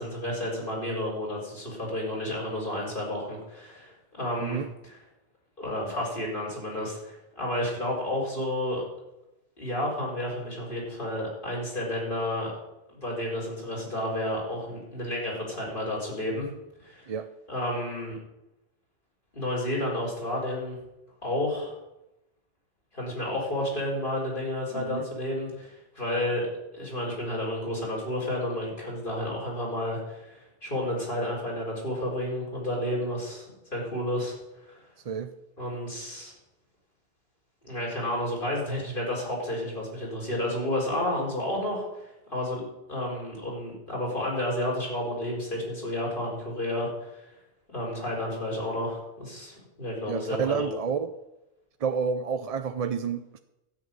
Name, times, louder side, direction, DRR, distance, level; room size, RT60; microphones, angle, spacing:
voice 1, 0.0-5.0 5.6-8.8 9.6-12.5 12.9-16.5 16.8-17.1 17.5-18.1 19.3-20.8 21.2-21.7 22.9-26.5 26.7-34.4 34.6-34.8 35.6-36.3 37.6-42.6 42.9-47.2 47.7-50.7, left 1 dB, 50° left, 4.8 m, -31 dB
voice 2, 24.7-25.1 35.1-35.3 50.1-51.1 51.8-53.4, right 6 dB, 45° right, 0.5 m, -29 dB
12.5 x 6.0 x 9.5 m
omnidirectional pair, 1.1 m